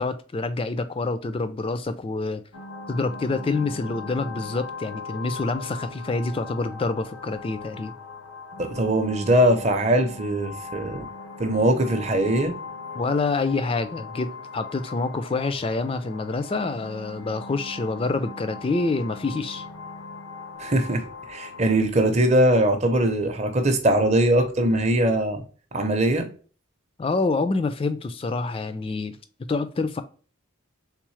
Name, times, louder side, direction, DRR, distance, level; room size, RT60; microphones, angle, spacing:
voice 1, 0.0-2.4 2.9-7.9 13.0-19.6 27.0-30.0, left 3 dB, 25° left, 0.3 m, -27 dB
sound 1, 2.5-21.7, left 4 dB, 90° left, 0.7 m, -39 dB
voice 2, 8.6-11.1 11.4-12.6 20.6-25.4 25.7-26.3, right 1 dB, 30° right, 0.6 m, -21 dB
3.6 x 3.4 x 3.1 m
head